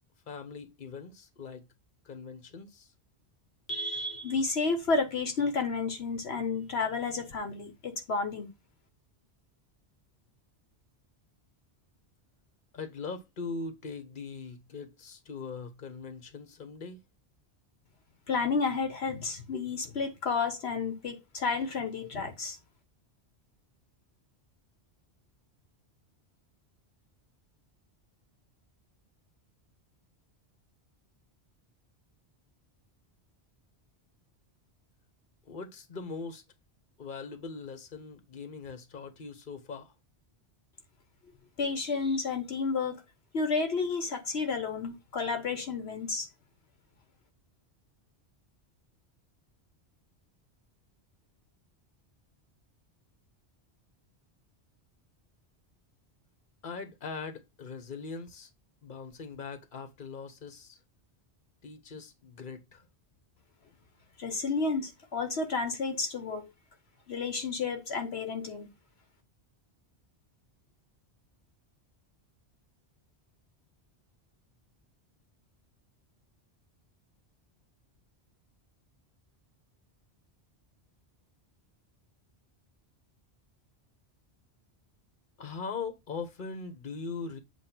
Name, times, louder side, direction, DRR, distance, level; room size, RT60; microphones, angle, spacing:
voice 1, 0.3-1.6 2.0-2.9 12.7-17.0 35.5-36.4 37.0-39.9 56.6-58.5 58.8-60.8 61.6-62.9 85.4-87.4, left 4 dB, 50° left, 1.3 m, -41 dB
voice 2, 3.7-8.5 18.3-22.6 41.6-43.0 43.3-46.3 64.2-66.5 67.1-68.7, left 4 dB, 70° left, 1.3 m, -31 dB
8.0 x 2.7 x 6.0 m
omnidirectional pair, 1.1 m